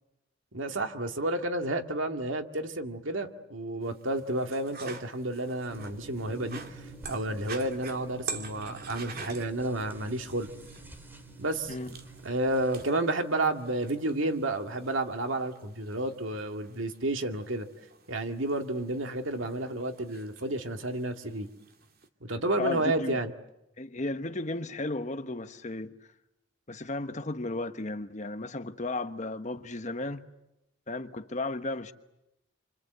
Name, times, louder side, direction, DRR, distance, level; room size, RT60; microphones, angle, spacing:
voice 1, 0.5-6.8 7.1-10.5 11.4-11.7 12.2-17.7 18.1-21.5 22.2-23.3, right 1 dB, 85° right, 2.2 m, -31 dB
sound 1, 3.8-22.1, right 5 dB, 50° right, 2.5 m, -47 dB
sound 2, 5.7-12.8, right 2 dB, 10° right, 2.2 m, -48 dB
voice 2, 22.6-23.2 23.8-25.9 26.7-30.3 30.9-31.9, left 2 dB, 40° left, 1.2 m, -34 dB
28.5 x 26.0 x 8.1 m
head